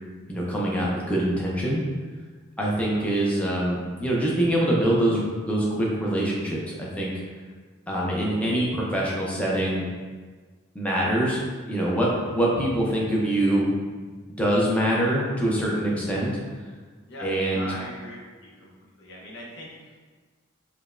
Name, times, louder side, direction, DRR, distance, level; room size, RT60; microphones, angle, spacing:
voice 1, 0.3-1.8 2.6-7.1 7.9-9.8 10.7-13.7 14.4-16.3 17.2-17.7, right 1 dB, 5° left, -5 dB, 0.5 m, -24 dB
voice 2, 17.1-18.2 18.4-18.7 19.0-20.0, equal, 55° left, -3 dB, 0.7 m, -40 dB
4.9 x 2.2 x 2.4 m, 1.5 s
head